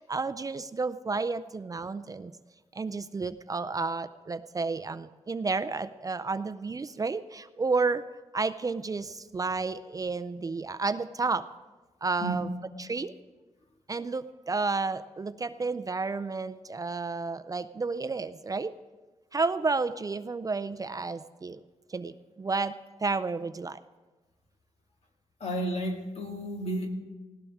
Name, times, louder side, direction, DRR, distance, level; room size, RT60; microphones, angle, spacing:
voice 1, 0.0-2.3 2.7-8.0 8.3-11.4 12.0-12.5 12.8-13.1 13.9-18.7 19.3-21.6 21.9-22.7 23.0-23.8, right 4 dB, 30° right, 12 dB, 0.4 m, -31 dB
voice 2, 12.2-12.5 25.4-26.9, right 1 dB, 60° left, 2 dB, 2.1 m, -32 dB
19.0 x 16.5 x 3.6 m, 1.2 s
wide cardioid pair, 140°, 12 cm